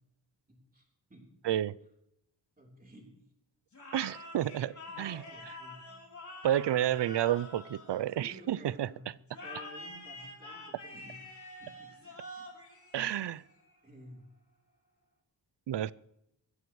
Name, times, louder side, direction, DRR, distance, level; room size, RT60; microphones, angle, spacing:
voice 1, 0.5-0.8 1.1-1.2 2.6-3.1 4.9-6.0 6.7-6.9 8.2-11.2 11.6-12.5 13.8-14.2, right 1 dB, 20° right, 3.7 m, -53 dB
voice 2, 1.4-1.8 3.9-5.2 6.4-8.9 12.9-13.4 15.7-15.9, right 11 dB, 70° right, 0.5 m, -30 dB
sound 1, 3.7-8.5 9.3-13.7, left 2 dB, 45° left, 3.6 m, -47 dB
22.5 x 14.5 x 3.1 m
wide cardioid pair, 165°, 43 cm